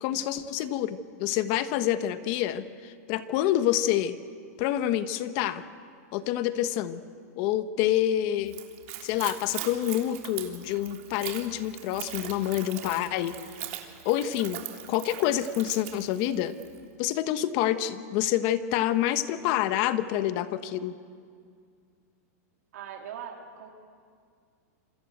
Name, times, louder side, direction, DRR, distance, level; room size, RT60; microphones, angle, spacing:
voice 1, 0.0-4.2 4.6-5.6 6.1-7.0 7.4-8.6 9.0-13.3 14.0-14.6 14.9-16.6 17.0-20.9, left 12 dB, 45° left, 12 dB, 1.2 m, -27 dB
Splash splatter / Trickle dribble, 8.4-16.8, right 13 dB, 55° right, 3.3 m, -41 dB
voice 2, 22.7-23.7, right 8 dB, 75° right, 2 dB, 3.3 m, -40 dB
27.5 x 25.0 x 8.0 m, 2.2 s
supercardioid pair, 150°, 9 cm